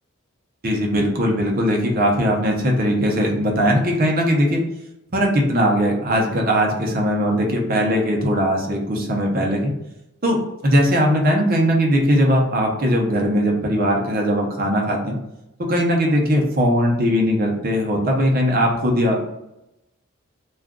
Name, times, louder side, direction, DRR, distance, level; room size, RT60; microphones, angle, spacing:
voice 1, 0.6-4.6 5.1-9.7 10.2-15.2 15.7-19.2, equal, 45° right, 0 dB, 0.7 m, -19 dB
2.4 x 2.3 x 3.6 m, 0.89 s
head